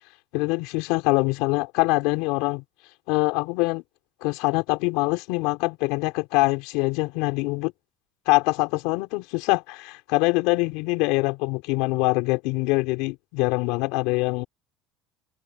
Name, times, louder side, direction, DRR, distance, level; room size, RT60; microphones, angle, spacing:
voice 1, 0.3-2.6 3.1-3.8 4.2-7.7 8.3-14.4, left 24 dB, 65° left, 5.3 m, -24 dB
cardioid pair, 170°, 0 cm